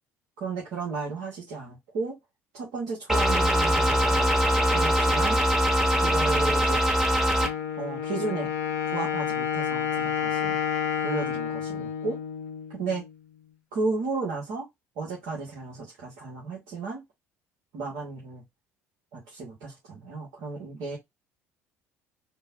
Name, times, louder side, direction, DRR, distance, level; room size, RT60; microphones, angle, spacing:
voice 1, 0.4-2.1 2.5-4.3 4.7-5.4 6.0-6.8 7.8-8.5 8.9-10.6 11.0-12.2 12.7-13.0 13.7-14.7 15.0-17.0 17.7-18.4 19.1-21.0, right 3 dB, 65° right, 1.2 m, -33 dB
sound 1, 3.1-7.5, equal, 5° right, 1.0 m, -22 dB
Wind instrument woodwind instrument, 7.4-13.1, left 8 dB, 80° left, 0.6 m, -30 dB
3.7 x 2.2 x 2.5 m
hypercardioid pair, 60°, 8 cm